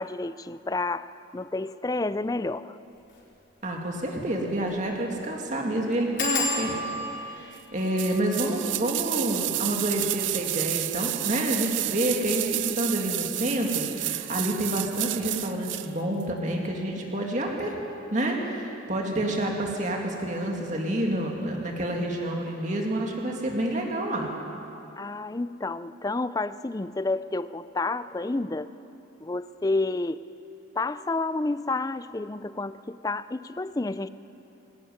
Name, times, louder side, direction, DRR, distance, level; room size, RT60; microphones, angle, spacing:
voice 1, 0.0-2.8 25.0-28.7 29.2-30.2 30.8-34.1, left 2 dB, 20° left, 14 dB, 0.4 m, -30 dB
sound 1, 3.0-3.2 3.6-3.7 3.9-4.0 4.6-4.9 5.1-5.2 6.2-11.4 12.1-12.6 13.0-13.3 13.6-13.7, left 3 dB, 65° left, 4.3 m, -35 dB
voice 2, 3.6-6.8 7.1-17.7 18.1-24.3, right 1 dB, 40° right, 0 dB, 2.3 m, -28 dB
sound 2, 8.0-15.9 16.2-16.3, right 16 dB, 75° right, 0.6 m, -30 dB
20.5 x 17.5 x 9.5 m, 2.9 s
head